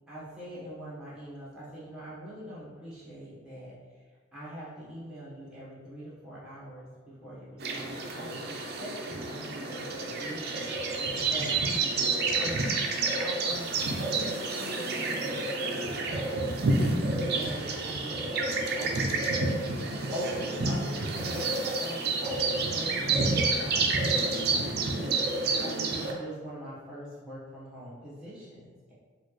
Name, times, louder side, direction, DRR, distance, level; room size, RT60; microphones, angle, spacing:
voice 1, 0.1-3.7 4.3-10.7 11.3-11.6 12.3-12.7 13.1-16.6 17.0-18.1 18.7-19.8 20.1-24.7 25.6-28.9, equal, 5° right, -9 dB, 1.1 m, -42 dB
sound 1, 7.6-26.1, right 3 dB, 50° right, 0.4 m, -29 dB
4.1 x 2.4 x 3.1 m, 1.5 s
head